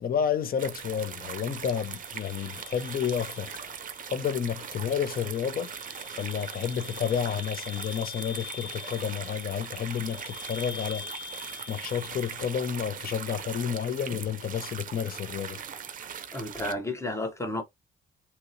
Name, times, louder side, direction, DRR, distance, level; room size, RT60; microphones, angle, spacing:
voice 1, 0.0-3.5 4.1-5.7 6.2-11.1 11.7-15.6, left 8 dB, 50° left, 0.6 m, -30 dB
sound 1, 0.6-16.7, right 8 dB, 45° right, 0.5 m, -40 dB
sound 2, 0.7-13.7, left 6 dB, 75° left, 1.2 m, -46 dB
voice 2, 16.3-17.6, left 1 dB, 15° left, 0.9 m, -32 dB
2.9 x 2.9 x 2.6 m
cardioid pair, 90°, 20 cm